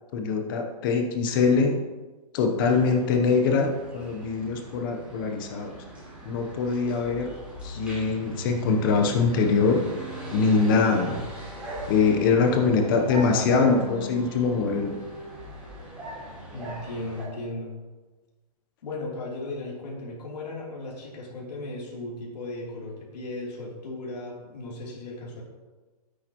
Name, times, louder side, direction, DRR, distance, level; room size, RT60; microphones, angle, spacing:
voice 1, 0.1-1.8 2.3-5.7 6.2-7.3 7.6-9.8 10.3-11.2 11.9-15.0, left 4 dB, 30° left, 4 dB, 0.9 m, -23 dB
sound 1, 2.6-17.3, right 1 dB, 5° right, 2.8 m, -41 dB
sound 2, 7.0-15.6, left 3 dB, 55° left, 2.1 m, -41 dB
voice 2, 12.4-13.5 16.5-17.7 18.8-25.4, left 2 dB, 80° left, -3 dB, 3.2 m, -36 dB
9.7 x 8.6 x 3.0 m, 1.2 s
hypercardioid pair, 165°, 21 cm